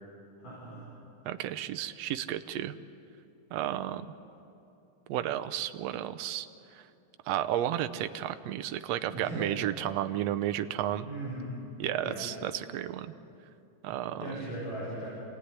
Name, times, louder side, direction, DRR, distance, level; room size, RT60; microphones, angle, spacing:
voice 1, 0.4-0.9 9.1-9.6 11.0-11.6 12.0-12.3 13.9-15.1, right 1 dB, 80° left, -6 dB, 6.7 m, -38 dB
voice 2, 1.3-2.8 3.5-4.1 5.1-6.5 6.7-6.8 7.3-11.1 11.8-13.1 13.8-14.3, right 12 dB, 70° right, 11 dB, 1.6 m, -32 dB
27.0 x 18.0 x 9.9 m, 2.7 s
omnidirectional pair, 3.7 m